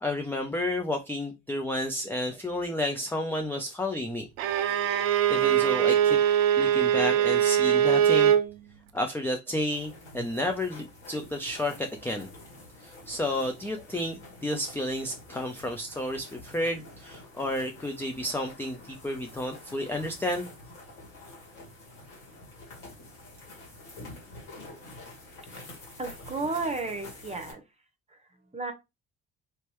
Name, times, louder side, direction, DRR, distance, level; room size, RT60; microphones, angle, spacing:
voice 1, 0.0-4.3 5.3-6.2 6.6-8.3 8.9-12.3 12.8-20.5, left 1 dB, 5° left, 0.5 m, -31 dB
Bowed string instrument, 4.4-8.5, right 10 dB, 80° right, 0.5 m, -22 dB
sound 1, 9.7-27.5, left 2 dB, 80° left, 1.9 m, -47 dB
voice 2, 26.0-27.6 28.1-28.7, right 3 dB, 15° right, 1.0 m, -33 dB
3.2 x 2.9 x 3.1 m
hypercardioid pair, 50°, 40 cm